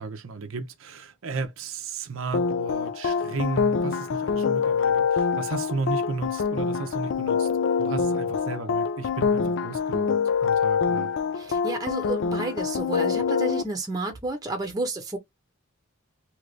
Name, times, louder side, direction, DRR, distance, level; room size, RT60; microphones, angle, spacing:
voice 1, 0.0-7.5 7.8-11.1, right 4 dB, 70° right, 0.6 m, -34 dB
sound 1, 2.3-13.6, left 5 dB, 60° left, 0.3 m, -25 dB
voice 2, 11.3-15.2, right 2 dB, 15° right, 0.9 m, -31 dB
2.9 x 2.5 x 3.1 m
head